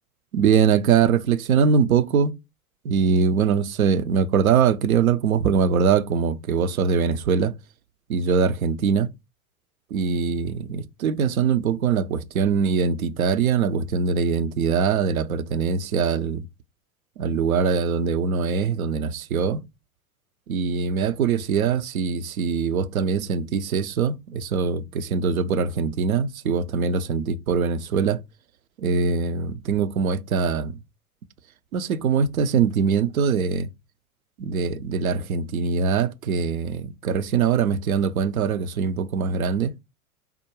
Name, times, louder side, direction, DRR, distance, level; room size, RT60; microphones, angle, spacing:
voice 1, 0.3-2.3 2.8-7.5 8.1-9.1 9.9-16.5 17.2-19.6 20.5-28.2 28.8-30.8 31.7-33.7 34.4-39.7, right 6 dB, 75° right, 0.5 m, -22 dB
3.4 x 2.1 x 3.0 m
figure-of-eight pair, 85°, 42 cm